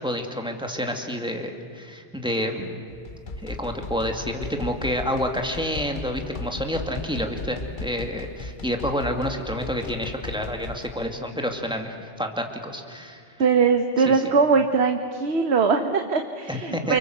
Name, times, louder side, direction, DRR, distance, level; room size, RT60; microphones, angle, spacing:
voice 1, 0.0-2.9 3.4-13.2 14.1-14.2 16.5-17.0, equal, 5° right, 3 dB, 2.4 m, -29 dB
sound 1, 2.9-11.1, left 3 dB, 50° left, 1.1 m, -37 dB
voice 2, 13.4-17.0, right 5 dB, 75° right, 6 dB, 1.4 m, -21 dB
30.0 x 24.0 x 8.0 m, 2.3 s
omnidirectional pair, 1.1 m